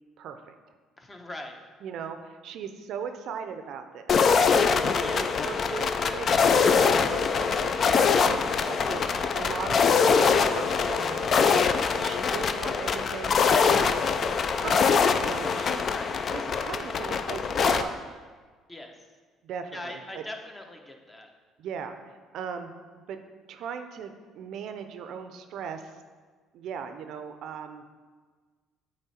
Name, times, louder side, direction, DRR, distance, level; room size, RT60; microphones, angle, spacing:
voice 1, 0.2-0.5 1.8-4.3 4.8-13.9 14.6-14.9 15.2-15.8 16.3-18.2 19.4-20.2 21.6-22.0 22.3-22.7 23.1-23.2 23.5-25.8 26.5-27.8, right 7 dB, 65° right, 8 dB, 0.5 m, -38 dB
voice 2, 1.0-1.6 5.0-5.3 15.9-16.1 18.7-18.9 19.7-21.3, left 1 dB, 20° left, 3 dB, 0.9 m, -41 dB
sound 1, 4.1-17.8, left 5 dB, 50° left, 0.4 m, -23 dB
8.2 x 3.2 x 4.2 m, 1.5 s
supercardioid pair, 65°, 0 cm